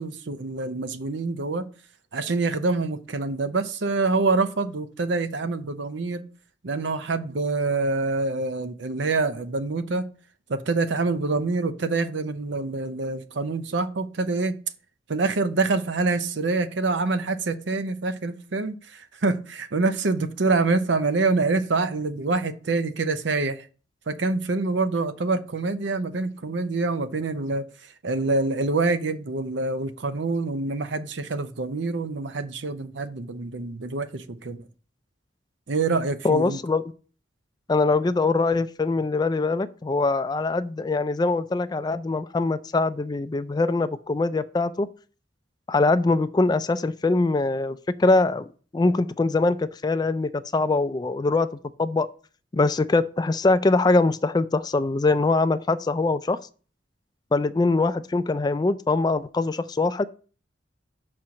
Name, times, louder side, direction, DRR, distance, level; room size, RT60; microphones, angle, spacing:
voice 1, 0.0-1.6 2.1-6.2 6.6-10.1 10.5-14.5 15.1-23.7 24.1-27.6 28.0-34.6 35.7-36.6, right 3 dB, 80° right, 0.7 m, -26 dB
voice 2, 36.2-36.8 37.7-44.9 45.7-48.5 48.7-51.5 51.8-52.1 52.5-56.4 57.3-60.1, left 3 dB, 20° left, 0.3 m, -23 dB
5.8 x 4.4 x 6.3 m
head